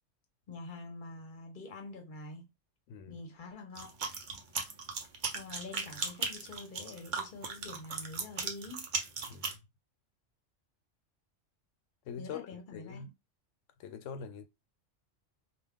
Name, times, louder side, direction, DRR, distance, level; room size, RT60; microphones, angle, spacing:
voice 1, 0.5-2.5 3.1-3.9 5.3-8.9 12.2-13.0, left 3 dB, 50° left, 0.8 m, -46 dB
voice 2, 2.9-3.2 9.2-9.6 12.0-13.1 13.8-14.4, left 7 dB, 85° left, 0.9 m, -44 dB
sound 1, 3.8-9.6, right 4 dB, 50° right, 0.7 m, -37 dB
2.4 x 2.3 x 3.5 m
omnidirectional pair, 1.3 m